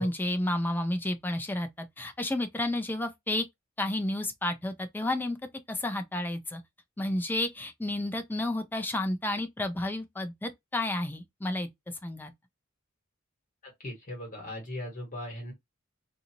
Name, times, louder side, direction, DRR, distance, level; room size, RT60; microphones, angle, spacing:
voice 1, 0.0-3.4 3.8-5.4 5.7-6.6 7.0-11.7 12.0-12.3, left 1 dB, 10° left, 0.4 m, -31 dB
voice 2, 13.6-15.5, left 1 dB, 40° left, 1.5 m, -38 dB
2.7 x 2.6 x 2.8 m
head